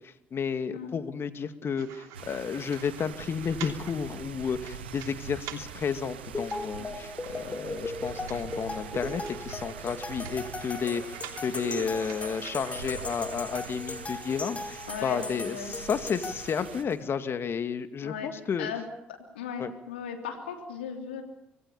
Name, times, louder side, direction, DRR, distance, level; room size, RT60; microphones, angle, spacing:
voice 1, 0.3-18.7 19.6-19.7, left 6 dB, 45° left, 10 dB, 2.4 m, -32 dB
sound 1, 1.8-13.7, right 11 dB, 70° right, 3.0 m, -46 dB
sound 2, 2.1-16.8, right 7 dB, 85° right, 1.6 m, -44 dB
sound 3, 6.3-17.0, left 2 dB, 25° left, 4.2 m, -38 dB
voice 2, 14.9-15.7 18.0-18.3 18.6-18.8 19.3-21.2, left 7 dB, 85° left, 4 dB, 3.2 m, -36 dB
26.5 x 21.0 x 7.2 m, 0.80 s
hypercardioid pair, 50°, 6 cm